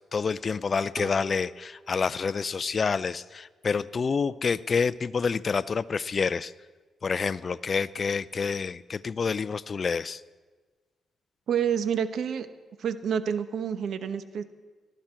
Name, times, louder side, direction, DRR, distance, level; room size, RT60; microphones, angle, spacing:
voice 1, 0.1-6.5 7.0-10.2, left 5 dB, 45° left, 17 dB, 0.5 m, -28 dB
sound 1, 1.0-3.8, right 2 dB, 25° right, 2.2 m, -46 dB
voice 2, 11.5-12.5 12.8-14.4, right 8 dB, 70° right, 11 dB, 1.0 m, -28 dB
19.5 x 13.5 x 4.5 m, 1.4 s
cardioid pair, 75°, 0 cm